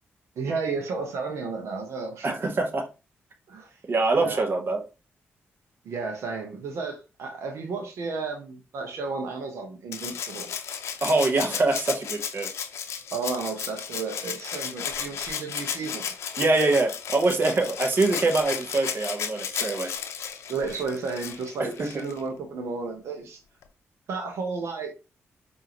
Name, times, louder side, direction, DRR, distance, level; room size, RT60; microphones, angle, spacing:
voice 1, 0.4-2.3 3.5-3.8 4.2-4.5 5.8-10.5 13.1-16.1 20.5-23.4 24.1-24.9, right 4 dB, 75° right, 4 dB, 0.8 m, -32 dB
voice 2, 2.2-2.9 3.9-4.8 11.0-12.5 16.4-19.9 21.8-21.9, right 3 dB, 45° right, 3 dB, 1.0 m, -24 dB
Rattle (instrument), 9.9-22.2 23.6-23.7, left 7 dB, 75° left, 0.6 m, -34 dB
4.8 x 2.7 x 2.9 m, 0.30 s
cardioid pair, 70°, 5 cm